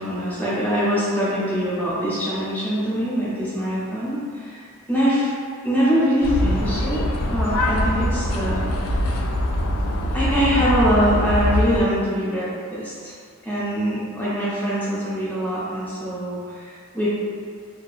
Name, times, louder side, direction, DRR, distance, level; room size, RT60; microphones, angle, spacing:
voice 1, 0.0-5.3 5.6-8.7 10.1-13.1 13.4-17.1, equal, 10° left, -10 dB, 0.6 m, -23 dB
sound 1, 6.2-11.8, left 1 dB, 80° left, 0.3 m, -23 dB
2.6 x 2.2 x 2.3 m, 2.1 s
head